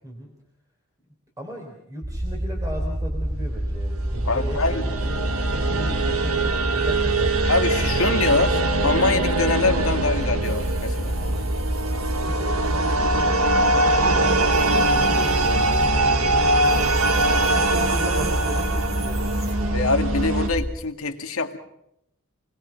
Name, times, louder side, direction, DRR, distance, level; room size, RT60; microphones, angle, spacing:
voice 1, 1.4-7.4 7.8-8.3 11.2-11.6 11.9-13.4 13.7-16.9 17.4-19.8, equal, 15° right, 0 dB, 3.6 m, -37 dB
sound 1, 2.0-20.7, equal, 50° right, 2.5 m, -27 dB
sound 2, 4.0-20.5, right 2 dB, 90° right, 1.6 m, -23 dB
voice 2, 4.3-4.9 7.5-11.2 19.7-21.6, left 3 dB, 75° left, 5 dB, 2.1 m, -24 dB
sound 3, 10.4-13.0 14.0-19.5, right 4 dB, 70° right, 6.5 m, -43 dB
28.0 x 20.0 x 5.8 m, 0.79 s
head